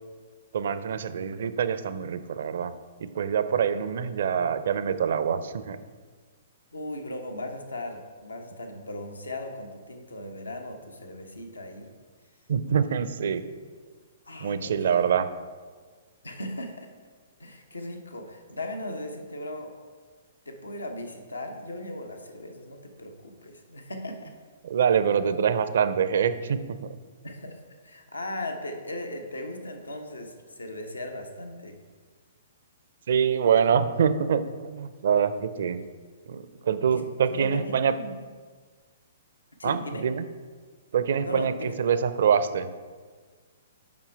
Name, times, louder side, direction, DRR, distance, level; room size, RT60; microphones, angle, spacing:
voice 1, 0.5-2.7 3.0-5.8 12.5-13.4 14.4-15.3 24.1-24.2 24.6-26.8 33.1-35.8 36.3-38.0 39.6-40.2 40.9-42.7, right 7 dB, 60° right, 12 dB, 0.5 m, -25 dB
voice 2, 6.7-11.9 14.3-15.1 16.2-16.9 17.4-19.7 20.5-24.3 27.2-27.6 27.8-31.8 36.9-37.0 37.3-38.1 39.6-40.0 41.2-41.8, left 1 dB, 85° left, 4 dB, 0.9 m, -37 dB
7.3 x 5.4 x 4.5 m, 1.5 s
figure-of-eight pair, 120°, 0 cm